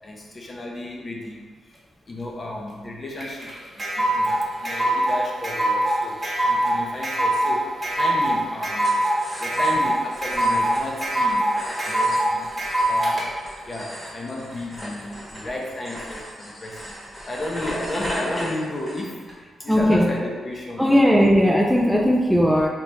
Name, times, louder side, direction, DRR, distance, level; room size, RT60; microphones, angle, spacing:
voice 1, 0.0-1.8 2.1-8.9 9.4-12.5 12.8-13.3 13.7-17.0 17.3-21.0, left 1 dB, 40° left, -1 dB, 0.7 m, -33 dB
sound 1, 3.2-13.2, right 1 dB, 30° right, 1.2 m, -22 dB
sound 2, 8.8-19.3, equal, 15° left, 1.1 m, -37 dB
voice 2, 19.7-20.1 20.8-22.7, equal, ahead, 0 dB, 0.3 m, -17 dB
2.9 x 2.8 x 3.4 m, 1.5 s
cardioid pair, 65°, 0 cm